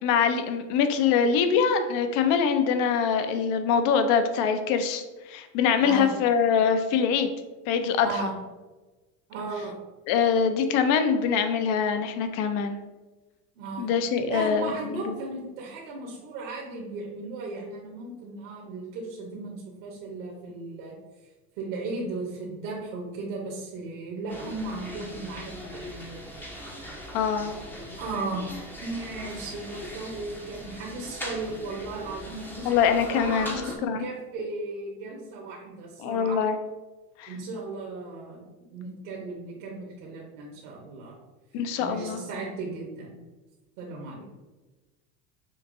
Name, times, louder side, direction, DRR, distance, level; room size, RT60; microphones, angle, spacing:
voice 1, 0.0-7.3 7.7-8.3 10.1-12.8 13.8-14.7 15.1-15.2 27.1-27.5 32.7-33.5 33.8-34.0 36.0-36.6 37.2-37.3 41.5-42.2, left 6 dB, 55° left, 8 dB, 0.7 m, -24 dB
voice 2, 5.8-6.1 8.0-8.3 9.3-9.7 13.6-13.9 14.3-19.6 19.8-21.0 21.6-26.2 27.5-27.6 28.0-28.5 28.8-32.7 33.1-36.4 37.3-38.4 38.7-41.1 41.8-43.2 43.8-44.3, right 3 dB, 70° right, -3 dB, 1.2 m, -36 dB
sound 1, 24.3-33.8, equal, 5° left, 0.6 m, -40 dB
5.8 x 2.6 x 2.6 m, 1.2 s
supercardioid pair, 110°, 46 cm